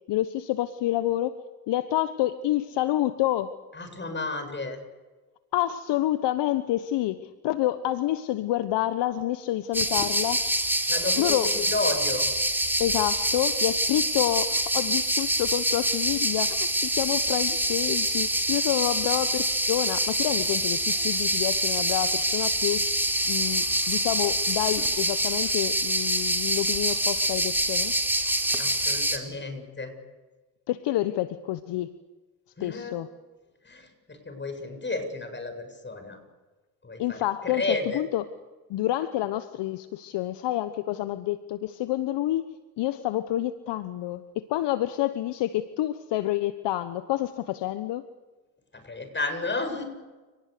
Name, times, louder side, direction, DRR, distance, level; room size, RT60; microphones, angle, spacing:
voice 1, 0.1-3.6 5.5-10.4 11.2-11.5 12.8-22.8 23.2-27.9 30.7-32.0 32.6-33.1 37.0-37.6 37.9-38.3 38.7-42.5 42.8-48.1, left 14 dB, 60° left, 12 dB, 1.2 m, -28 dB
voice 2, 3.7-4.8 10.9-12.3 28.6-29.9 32.6-32.9 33.6-36.2 36.8-38.0 48.7-49.8, left 3 dB, 25° left, 6 dB, 7.6 m, -32 dB
sound 1, 9.7-29.2, right 1 dB, 5° right, 4.0 m, -26 dB
30.0 x 19.5 x 6.9 m, 1.2 s
hypercardioid pair, 70°, 48 cm